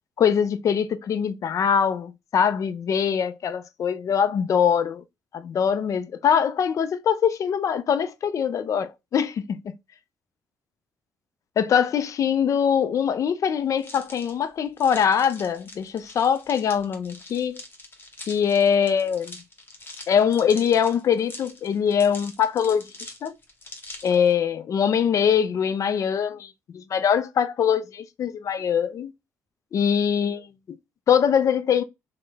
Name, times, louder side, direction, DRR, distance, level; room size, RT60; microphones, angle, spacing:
voice 1, 0.2-5.0 5.3-9.7 11.6-17.6 18.3-19.4 20.1-22.8 23.2-23.3 24.0-29.1 29.7-30.5 31.1-31.8, left 7 dB, 55° left, 0.4 m, -23 dB
sound 1, 13.8-24.3, left 2 dB, 35° left, 0.9 m, -44 dB
3.1 x 2.1 x 3.3 m
supercardioid pair, 60°, 6 cm